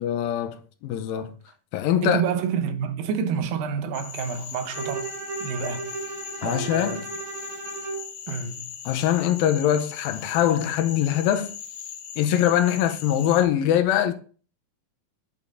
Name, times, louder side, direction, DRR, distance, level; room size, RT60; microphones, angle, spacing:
voice 1, 0.0-1.3 1.7-2.2 6.4-7.1 8.9-11.5 12.2-14.1, left 10 dB, 85° left, 2.5 m, -23 dB
voice 2, 2.0-5.1 5.4-5.9 6.4-7.1 8.3-8.7, right 7 dB, 80° right, 2.6 m, -28 dB
Cricket / Frog, 3.9-13.4, left 8 dB, 70° left, 2.6 m, -39 dB
Bowed string instrument, 4.7-8.1, right 5 dB, 50° right, 2.0 m, -35 dB
9.3 x 5.9 x 3.7 m
omnidirectional pair, 4.2 m